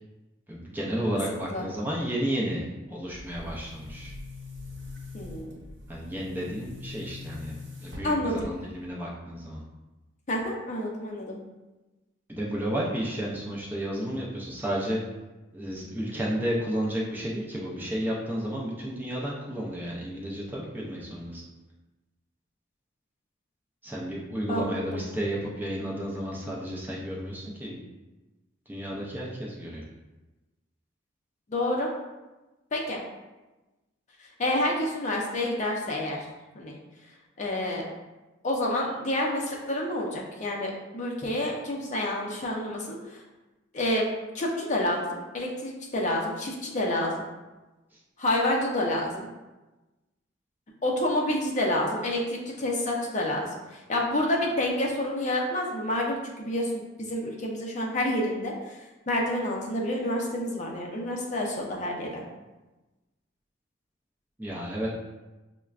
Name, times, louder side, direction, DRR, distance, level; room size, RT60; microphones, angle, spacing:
voice 1, 0.5-4.1 5.9-9.6 12.3-15.0 15.5-21.4 23.8-27.8 28.7-29.8 47.9-48.0 64.4-64.9, equal, 10° right, -4 dB, 0.5 m, -32 dB
Boom, 3.1-8.9, left 3 dB, 60° right, 1.2 m, -43 dB
voice 2, 5.1-5.6 8.0-8.5 10.3-11.4 24.5-25.0 31.5-31.9 32.7-33.0 34.2-36.3 36.5-36.7 37.4-37.9 38.4-43.2 43.7-44.1 44.3-47.2 48.2-49.3 50.8-62.2, left 1 dB, 40° left, -1 dB, 0.5 m, -28 dB
5.7 x 2.2 x 2.4 m, 1.1 s
head